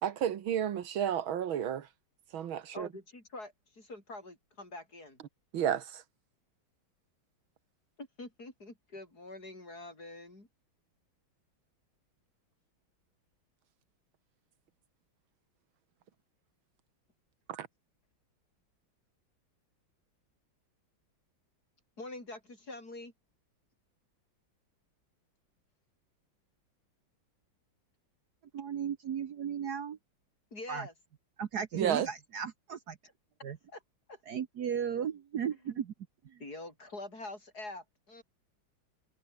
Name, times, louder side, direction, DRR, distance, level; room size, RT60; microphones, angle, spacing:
voice 1, 0.0-1.9 2.3-2.9 5.5-6.0 17.5-17.7 31.7-32.1, right 9 dB, 75° right, 2.0 m, -31 dB
voice 2, 2.7-5.2 8.0-10.5 22.0-23.1 30.5-30.9 33.7-33.8 34.1-34.2 35.7-35.8 36.4-38.2, left 2 dB, 45° left, 7.0 m, -45 dB
voice 3, 28.5-30.0 30.7-30.9 31.4-33.0 33.4-33.6 34.3-35.9 36.2-36.4, right 8 dB, 55° right, 1.5 m, -35 dB
omnidirectional pair, 2.2 m